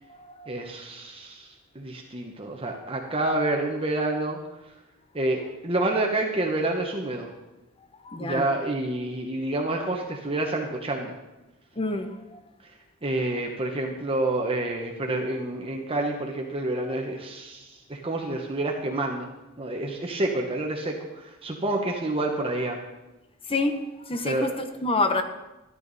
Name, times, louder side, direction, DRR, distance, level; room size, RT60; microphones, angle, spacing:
voice 1, 0.5-4.4 5.1-7.3 8.2-11.1 13.0-19.3 19.6-22.8 24.2-24.5, right 2 dB, 25° right, 1 dB, 1.1 m, -28 dB
voice 2, 8.1-8.4 11.8-12.1 23.5-23.7 24.1-25.2, left 2 dB, 25° left, 7 dB, 0.9 m, -26 dB
13.5 x 10.5 x 4.1 m, 1.0 s
head